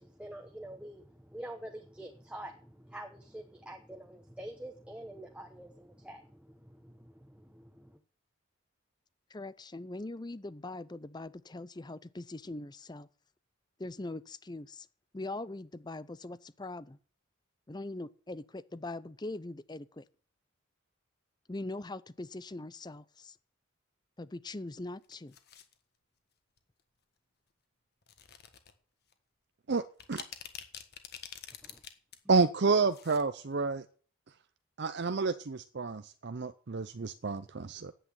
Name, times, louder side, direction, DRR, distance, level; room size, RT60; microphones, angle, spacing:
voice 1, 0.0-8.0 31.6-31.8, right 1 dB, 5° right, 1.0 m, -47 dB
voice 2, 9.3-13.1 13.8-14.9 15.1-17.0 17.7-20.0 21.5-23.4 24.2-25.4, left 2 dB, 20° left, 0.5 m, -41 dB
sound 1, 25.0-25.7 26.6-26.8 28.0-28.7 29.1-29.2 29.8-32.2 32.5-33.2 33.5-33.6, left 9 dB, 50° left, 1.6 m, -47 dB
voice 3, 32.3-33.8 34.8-37.9, right 4 dB, 55° right, 0.6 m, -29 dB
10.0 x 8.5 x 9.1 m
head